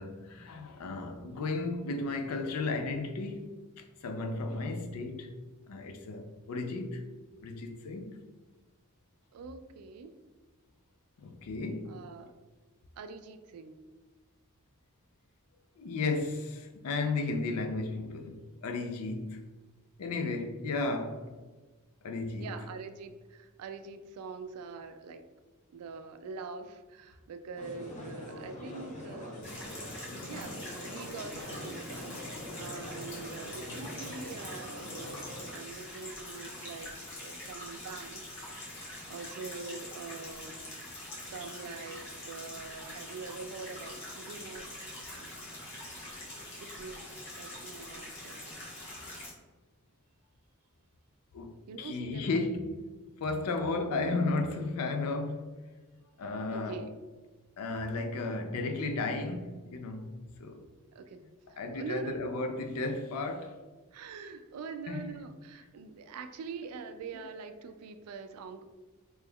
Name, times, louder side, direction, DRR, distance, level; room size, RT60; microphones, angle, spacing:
voice 1, 0.0-3.6 4.0-5.3 5.7-7.0 7.4-8.3 11.2-12.0 15.8-19.5 20.0-21.4 22.0-22.5 30.1-30.4 51.3-52.8 53.2-55.5 56.2-56.9 57.6-60.6 61.6-63.6 64.9-65.0, left 3 dB, 90° left, 0.4 m, -34 dB
voice 2, 9.3-10.1 11.9-12.3 12.9-13.8 20.6-20.7 22.4-25.2 25.7-29.8 30.2-38.6 39.1-40.5 41.2-45.5 46.2-47.1 47.4-48.4 51.7-52.4 56.5-56.9 60.9-61.2 61.5-62.2 63.9-68.6, right 4 dB, 85° right, 0.3 m, -44 dB
sound 1, 27.6-35.5, left 1 dB, 35° left, 0.6 m, -44 dB
sound 2, 29.4-49.3, left 1 dB, 55° left, 1.2 m, -44 dB
3.0 x 2.2 x 3.5 m
head